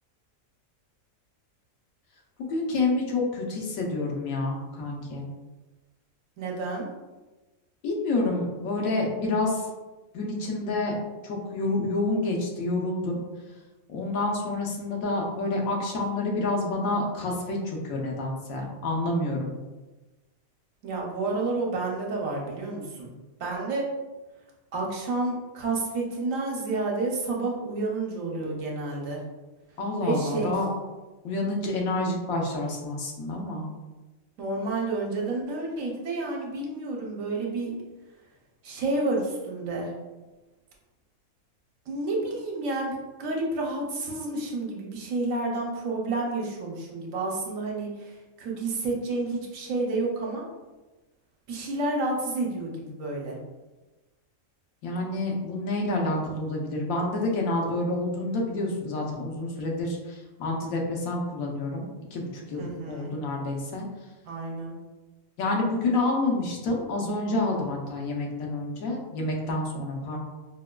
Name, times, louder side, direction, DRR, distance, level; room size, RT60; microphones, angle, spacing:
voice 1, 2.4-5.2 7.8-9.6 10.1-10.9 11.2-13.2 13.9-19.5 29.8-30.7 31.2-33.7 54.8-63.9 65.4-70.2, left 2 dB, 80° left, -1 dB, 1.1 m, -28 dB
voice 2, 6.4-6.9 20.8-23.1 23.4-23.9 24.7-29.2 30.0-30.5 34.4-37.7 38.6-39.9 41.9-50.5 51.5-53.4 62.6-63.1 64.2-64.8, right 2 dB, 70° right, -1 dB, 1.0 m, -30 dB
4.6 x 2.2 x 2.2 m, 1.1 s
omnidirectional pair, 1.5 m